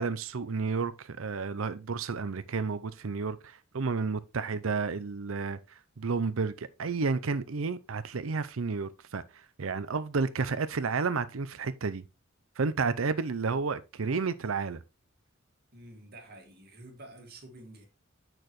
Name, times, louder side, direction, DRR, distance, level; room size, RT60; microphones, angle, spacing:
voice 1, 0.0-5.6 6.0-9.2 9.6-12.0 12.6-14.8, right 4 dB, 70° right, 0.6 m, -31 dB
voice 2, 15.7-17.9, right 1 dB, 50° right, 2.1 m, -49 dB
8.9 x 6.1 x 3.1 m
head